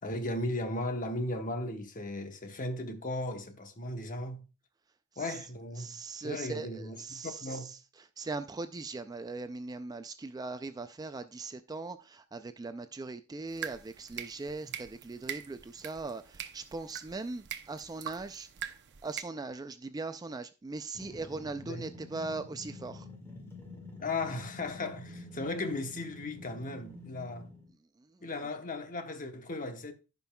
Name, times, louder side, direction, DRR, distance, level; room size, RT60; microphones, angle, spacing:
voice 1, 0.0-4.4 5.2-7.7 21.7-21.8 24.0-27.5 28.2-29.9, left 2 dB, 40° left, 0.9 m, -36 dB
voice 2, 5.8-7.8 8.2-18.7 19.0-23.1 28.0-28.3, right 3 dB, 15° right, 0.3 m, -40 dB
sound 1, 13.5-19.2, right 9 dB, 55° right, 0.7 m, -43 dB
sound 2, 20.9-27.7, left 2 dB, 10° left, 1.9 m, -48 dB
15.0 x 5.4 x 2.2 m
head